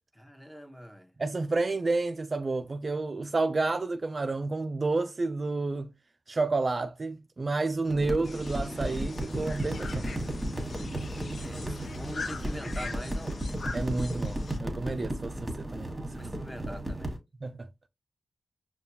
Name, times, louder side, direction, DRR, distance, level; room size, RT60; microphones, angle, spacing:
voice 1, 0.1-1.1 11.2-13.4 15.6-17.2, equal, ahead, 0.9 m, -44 dB
voice 2, 1.2-5.9 6.3-10.1 13.7-15.9 16.2-16.3 17.4-17.7, right 3 dB, 50° right, 0.3 m, -30 dB
sound 1, 7.9-17.2, right 1 dB, 20° right, 1.3 m, -34 dB
sound 2, 8.2-14.6, left 4 dB, 65° left, 0.5 m, -43 dB
5.3 x 2.3 x 2.7 m
cardioid pair, 45°, 0 cm